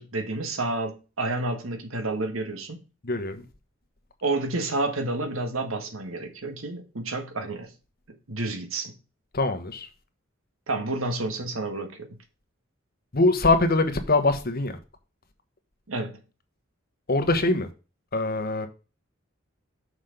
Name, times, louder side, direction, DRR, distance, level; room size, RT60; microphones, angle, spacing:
voice 1, 0.0-2.8 4.2-7.7 8.3-8.9 10.7-12.2 15.9-16.2, right 2 dB, 80° right, 1.5 m, -30 dB
voice 2, 3.0-3.5 9.3-9.9 13.1-14.8 17.1-17.7 18.1-18.7, left 2 dB, 50° left, 1.3 m, -23 dB
6.3 x 5.9 x 5.2 m
head